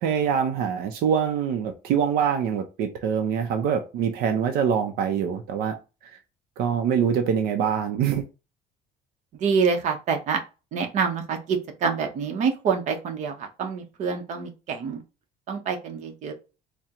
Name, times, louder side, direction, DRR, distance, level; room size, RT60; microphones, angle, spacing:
voice 1, 0.0-5.8 6.0-6.1 6.6-8.2, right 7 dB, 75° right, 0.6 m, -24 dB
voice 2, 9.3-10.4 10.7-15.0 15.5-16.3, right 6 dB, 50° right, 0.8 m, -26 dB
4.3 x 2.2 x 3.7 m
cardioid pair, 165°, 16 cm